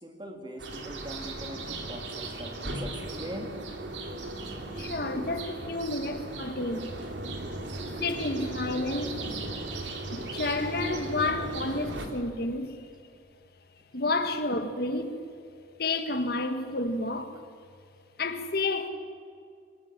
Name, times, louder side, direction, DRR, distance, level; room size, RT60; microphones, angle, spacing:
voice 1, 0.0-3.5, right 1 dB, 25° right, 2.9 m, -41 dB
sound 1, 0.6-12.1, right 2 dB, 85° right, 2.9 m, -37 dB
voice 2, 4.7-7.0 8.0-9.2 10.1-12.9 13.9-15.2 15.8-17.4 18.2-18.9, left 2 dB, 60° left, 1.7 m, -30 dB
25.0 x 19.0 x 7.5 m
head